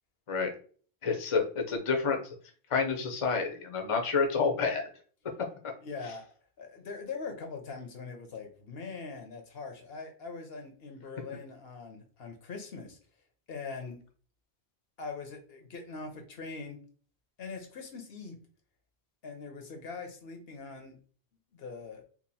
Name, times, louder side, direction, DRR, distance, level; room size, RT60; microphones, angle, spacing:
voice 1, 1.0-2.2 2.7-4.9, left 5 dB, 35° left, 3 dB, 0.7 m, -28 dB
voice 2, 5.8-6.2 6.6-13.0 13.5-14.0 15.0-16.8 17.4-18.4 19.2-21.0 21.5-22.0, left 4 dB, 70° left, 4 dB, 1.0 m, -42 dB
2.9 x 2.5 x 4.0 m, 0.43 s
omnidirectional pair, 1.1 m